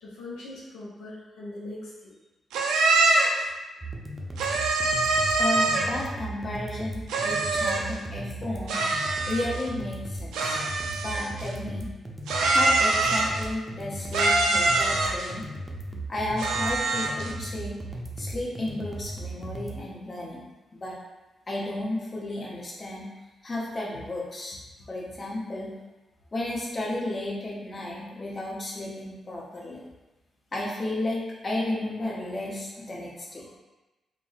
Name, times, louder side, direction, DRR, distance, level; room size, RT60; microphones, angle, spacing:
voice 1, 0.0-2.1 15.9-16.0, left 2 dB, 80° left, -8 dB, 0.5 m, -41 dB
sound 1, 2.5-3.4 4.4-6.0 7.1-7.9 8.7-9.7 10.3-11.5 12.3-13.5 14.1-15.3 16.4-17.3, right 2 dB, 80° right, 0.3 m, -24 dB
sound 2, 3.8-19.8, right 1 dB, 20° right, 0.6 m, -37 dB
voice 2, 5.4-8.8 9.3-10.6 11.0-11.9 12.5-15.4 16.1-17.8 18.2-20.4 20.7-20.9 21.5-23.1 23.4-24.6 24.9-25.8 26.3-29.8 30.5-33.6, left 1 dB, 40° left, -5 dB, 0.9 m, -33 dB
3.4 x 2.1 x 2.5 m, 1.1 s
hypercardioid pair, 40°, 0 cm